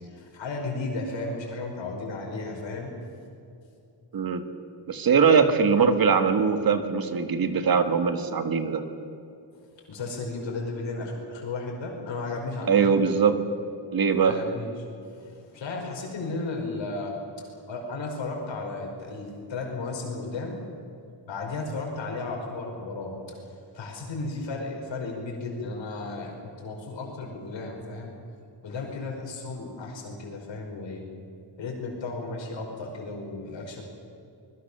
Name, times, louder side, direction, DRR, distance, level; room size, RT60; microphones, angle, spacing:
voice 1, 0.1-2.9 9.9-13.0 14.2-14.7 15.2-17.1 17.7-20.6 21.3-23.1 23.7-28.1 28.6-31.0 31.6-33.8, left 3 dB, 85° left, 0 dB, 5.2 m, -34 dB
voice 2, 4.9-8.8 12.7-13.4 13.9-14.4, right 6 dB, 55° right, 8 dB, 1.7 m, -21 dB
25.0 x 21.0 x 6.9 m, 2.7 s
wide cardioid pair, 170°, 44 cm